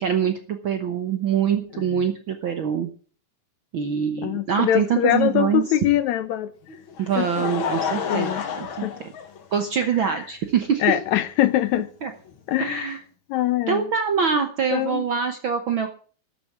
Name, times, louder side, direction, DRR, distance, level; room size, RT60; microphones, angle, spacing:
voice 1, 0.0-2.9 3.7-5.6 7.0-9.1 9.5-11.0 12.0-12.1 12.6-13.0 13.7-15.9, right 7 dB, 60° right, 1.3 m, -24 dB
voice 2, 4.2-6.5 7.2-7.5 8.1-8.4 8.8-8.9 10.0-10.2 10.8-11.9 12.5-12.9 13.3-13.9 14.7-15.0, left 12 dB, 75° left, 2.0 m, -23 dB
Laughter, 6.7-9.9 10.7-10.8 12.3-12.4, left 7 dB, 50° left, 1.9 m, -30 dB
13.0 x 8.6 x 7.3 m
omnidirectional pair, 3.6 m